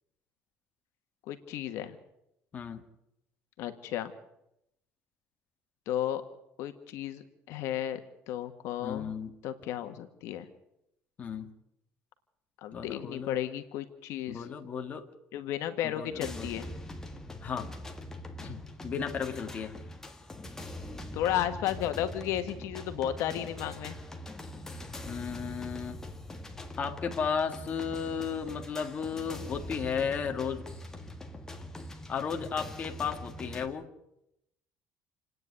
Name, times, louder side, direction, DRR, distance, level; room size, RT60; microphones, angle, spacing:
voice 1, 1.3-2.0 3.6-4.1 5.9-6.2 6.6-7.2 7.5-8.0 8.3-9.1 9.4-10.5 12.6-14.4 15.3-16.7 21.1-23.9, left 11 dB, 70° left, 8 dB, 1.6 m, -33 dB
voice 2, 8.8-9.3 11.2-11.5 12.7-13.4 14.3-15.1 15.8-16.7 17.4-17.7 18.4-19.7 25.0-26.0 26.8-30.6 32.1-33.9, left 6 dB, 30° left, 4 dB, 1.8 m, -34 dB
sound 1, 16.2-33.7, left 1 dB, 10° left, 1.9 m, -43 dB
28.5 x 9.6 x 9.6 m, 0.82 s
cardioid pair, 155°, 5 cm